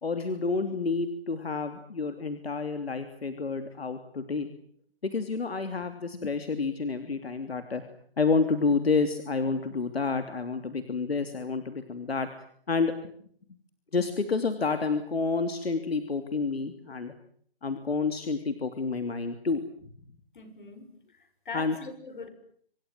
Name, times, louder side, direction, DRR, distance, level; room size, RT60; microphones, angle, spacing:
voice 1, 0.0-4.5 5.0-7.8 8.2-12.3 12.7-12.9 13.9-17.1 17.6-19.6 21.5-21.7, left 4 dB, 75° left, 8 dB, 3.2 m, -29 dB
voice 2, 20.3-22.3, left 4 dB, 50° left, 10 dB, 6.7 m, -42 dB
27.0 x 26.5 x 7.7 m, 0.63 s
hypercardioid pair, 175°, 31 cm